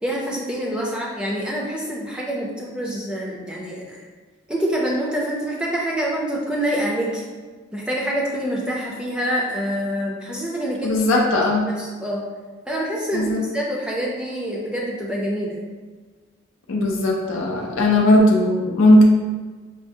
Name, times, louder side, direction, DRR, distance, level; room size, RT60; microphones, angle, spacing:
voice 1, 0.0-4.0 4.5-7.2 7.7-11.0 11.8-12.2 12.7-15.6, equal, 5° right, -4 dB, 0.5 m, -26 dB
voice 2, 10.8-11.7 13.1-13.4 16.7-19.1, left 1 dB, 85° left, 0 dB, 0.5 m, -17 dB
5.5 x 2.0 x 2.6 m, 1.4 s
head